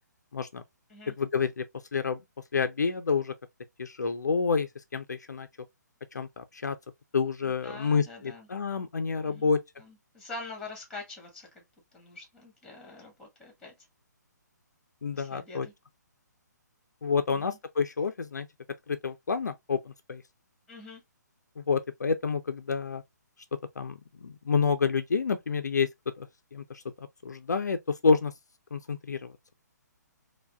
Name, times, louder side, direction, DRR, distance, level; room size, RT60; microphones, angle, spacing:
voice 1, 0.3-0.6 1.1-1.6 1.9-2.2 2.5-3.3 3.8-5.5 6.1-6.8 7.1-9.6 15.0-15.7 17.0-18.5 18.9-20.2 21.6-23.0 23.8-25.9 26.2-26.8 27.2-28.3 28.7-29.3, left 5 dB, 65° left, 0.4 m, -28 dB
voice 2, 7.4-8.5 9.2-9.5 9.8-11.6 11.9-13.7 15.1-15.7 17.3-17.6 20.7-21.0, left 3 dB, 5° left, 1.5 m, -45 dB
4.5 x 2.2 x 2.3 m
figure-of-eight pair, 135°, 10 cm